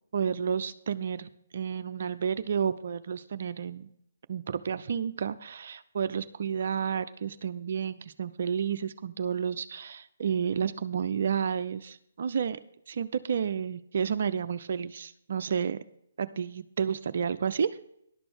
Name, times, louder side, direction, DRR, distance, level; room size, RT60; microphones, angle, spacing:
voice 1, 0.1-3.9 4.3-12.6 12.9-15.8 16.2-17.7, right 7 dB, 55° right, 11 dB, 0.5 m, -31 dB
11.5 x 6.9 x 6.2 m, 0.71 s
figure-of-eight pair, 135°, 0 cm